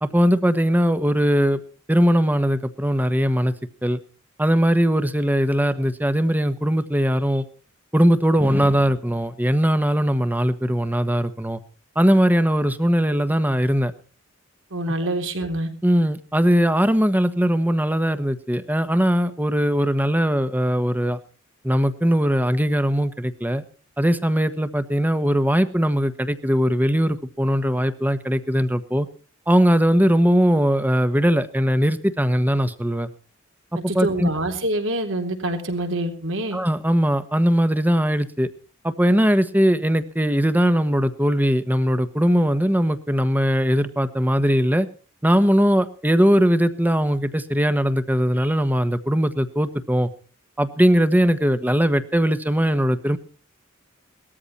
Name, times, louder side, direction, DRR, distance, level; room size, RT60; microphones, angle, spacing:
voice 1, 0.0-1.6 1.9-3.5 3.8-4.0 4.4-7.4 7.9-11.6 11.9-13.9 15.8-21.2 21.6-23.6 24.0-29.1 29.5-33.1 33.9-34.3 36.5-38.5 38.8-44.9 45.2-50.1 50.6-53.2, equal, 10° right, 12 dB, 1.3 m, -20 dB
voice 2, 14.7-15.7 33.9-36.6, right 1 dB, 70° right, 4 dB, 3.7 m, -26 dB
19.5 x 14.0 x 4.3 m, 0.39 s
head